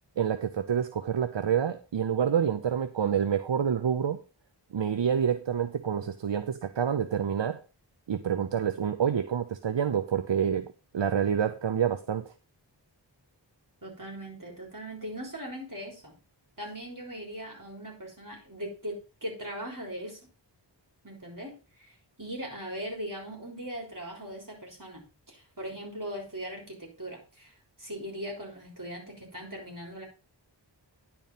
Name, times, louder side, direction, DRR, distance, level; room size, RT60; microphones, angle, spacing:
voice 1, 0.2-4.2 4.7-7.6 8.1-12.3, right 8 dB, 70° right, 10 dB, 0.7 m, -28 dB
voice 2, 13.8-16.1 16.6-20.2 21.0-21.5 21.8-21.9 22.2-27.5 27.8-30.1, equal, 45° right, 1 dB, 3.7 m, -39 dB
10.5 x 4.6 x 5.4 m, 0.33 s
wide cardioid pair, 40°, 45 cm